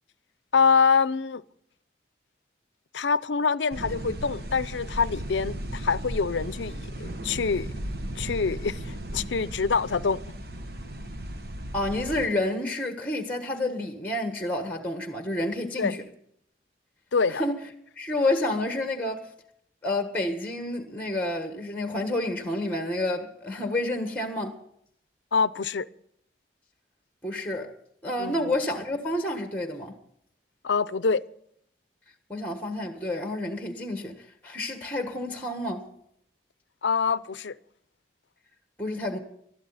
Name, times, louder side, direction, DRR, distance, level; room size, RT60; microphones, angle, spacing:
voice 1, 0.5-1.4 2.9-7.7 8.2-10.2 15.8-16.0 17.1-17.4 25.3-25.9 28.2-28.5 30.6-31.2 36.8-37.5, left 5 dB, 85° left, 0.6 m, -25 dB
sound 1, 3.7-12.3, right 1 dB, 55° right, 1.2 m, -36 dB
voice 2, 11.7-16.0 17.3-17.6 18.0-19.3 19.8-24.6 27.2-27.7 28.0-29.9 32.3-35.9 38.8-39.2, left 1 dB, 10° left, 1.4 m, -29 dB
20.0 x 13.0 x 4.1 m
head